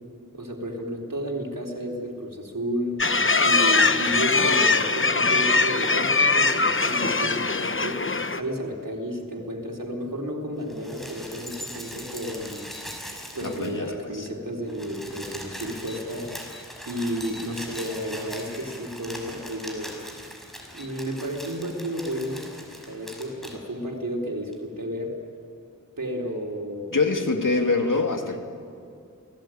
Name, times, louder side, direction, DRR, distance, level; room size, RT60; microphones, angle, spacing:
voice 1, 0.3-3.1 3.4-12.7 13.3-16.3 16.9-20.0 20.7-25.2 26.0-26.9, equal, 85° right, 0 dB, 4.0 m, -32 dB
sound 1, 3.0-8.4, left 3 dB, 40° left, 1.0 m, -21 dB
sound 2, 10.6-13.9 14.2-14.3 14.5-23.6 24.5-24.6, equal, ahead, 6.2 m, -40 dB
voice 2, 13.4-14.3 26.9-28.4, left 3 dB, 75° left, 3 dB, 2.7 m, -25 dB
28.5 x 19.0 x 9.2 m, 2.3 s
wide cardioid pair, 50°, 32 cm